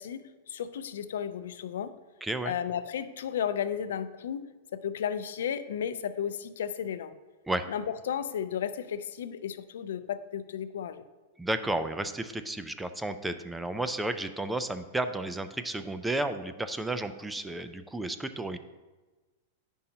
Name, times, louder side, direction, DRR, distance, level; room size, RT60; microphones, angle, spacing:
voice 1, 0.0-2.0 2.4-4.4 4.7-7.1 7.7-11.0, left 8 dB, 80° left, 12 dB, 0.4 m, -34 dB
voice 2, 2.2-2.6 7.5-7.7 11.4-18.6, right 2 dB, 5° right, 10 dB, 0.3 m, -32 dB
9.9 x 5.4 x 2.8 m, 1.2 s
supercardioid pair, 145°, 0 cm